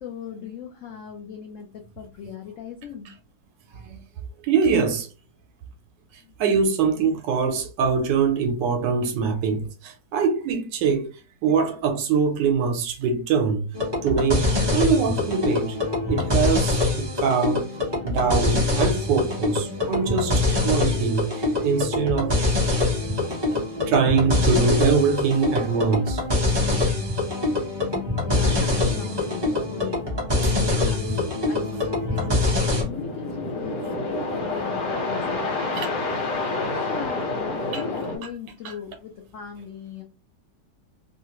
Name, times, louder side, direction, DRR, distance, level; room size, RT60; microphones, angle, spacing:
voice 1, 0.0-3.1 6.2-6.3 28.2-30.0 30.3-35.8 36.4-40.0, left 7 dB, 85° left, 0.7 m, -38 dB
voice 2, 4.4-5.1 6.4-11.1 11.4-13.7 14.0-15.8 16.1-17.7 18.0-22.4 23.0-23.2 23.9-26.2 27.5-27.8 32.2-32.3 33.8-33.9 34.1-34.4 35.8-36.1 37.7-37.8 38.2-38.3 38.6-38.8, right 5 dB, 85° right, 1.3 m, -23 dB
sound 1, 13.7-32.8, left 2 dB, 30° right, 0.5 m, -24 dB
sound 2, 28.3-38.2, left 3 dB, 65° left, 1.7 m, -30 dB
3.2 x 2.4 x 2.9 m
omnidirectional pair, 1.9 m